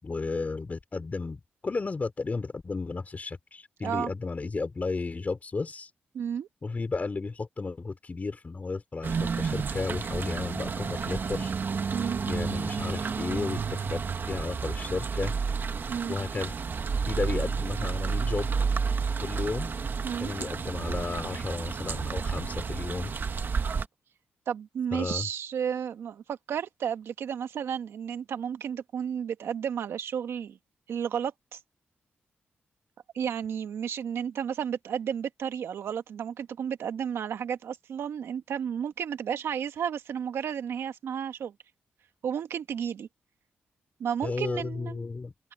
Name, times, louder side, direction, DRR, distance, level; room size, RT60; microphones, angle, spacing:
voice 1, 0.0-5.9 6.6-11.5 12.3-15.3 16.1-16.5 17.1-18.5 19.2-19.9 20.2-23.2 24.9-25.3 44.2-45.3, left 3 dB, 40° left, 3.5 m, -33 dB
voice 2, 6.1-6.5 11.9-12.2 15.9-16.1 20.0-20.3 24.5-30.6 30.9-31.6 33.1-41.5 42.2-43.1 44.0-45.1, right 8 dB, 85° right, 1.5 m, -32 dB
sound 1, 9.0-23.9, right 5 dB, 55° right, 1.3 m, -31 dB
cardioid pair, 65°, 4 cm